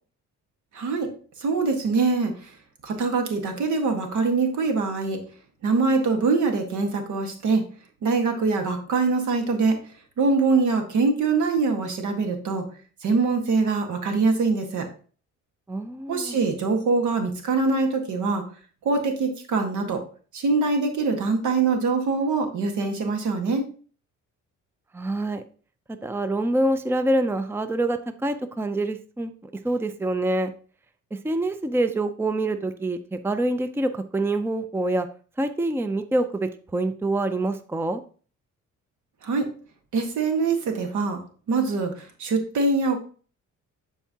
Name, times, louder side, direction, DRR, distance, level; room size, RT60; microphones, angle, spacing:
voice 1, 0.7-1.1 1.4-2.5 2.8-5.2 5.6-7.7 8.0-9.8 10.2-12.6 13.0-14.9 16.1-18.4 18.8-20.0 20.3-23.6 39.2-39.5 39.9-41.2 41.5-43.0, right 4 dB, 75° right, 5 dB, 1.7 m, -23 dB
voice 2, 15.7-16.4 24.9-25.4 26.0-29.3 29.6-30.5 31.2-35.1 35.4-38.0, right 1 dB, 10° right, 9 dB, 0.5 m, -26 dB
11.0 x 4.6 x 2.9 m, 0.41 s
cardioid pair, 90°, 30 cm